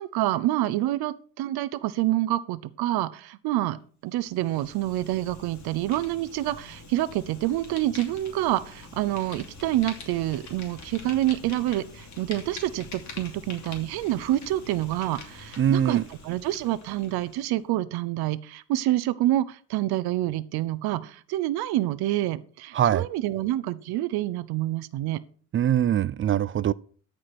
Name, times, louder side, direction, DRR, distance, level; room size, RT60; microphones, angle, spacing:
voice 1, 0.0-3.8 4.0-25.2, right 15 dB, 75° right, 0.8 m, -27 dB
Fire, 4.2-17.5, left 3 dB, 50° left, 2.9 m, -45 dB
voice 2, 15.6-16.1 22.7-23.1 25.5-26.7, right 10 dB, 35° right, 0.4 m, -22 dB
13.5 x 5.0 x 6.0 m
cardioid pair, 110°, 38 cm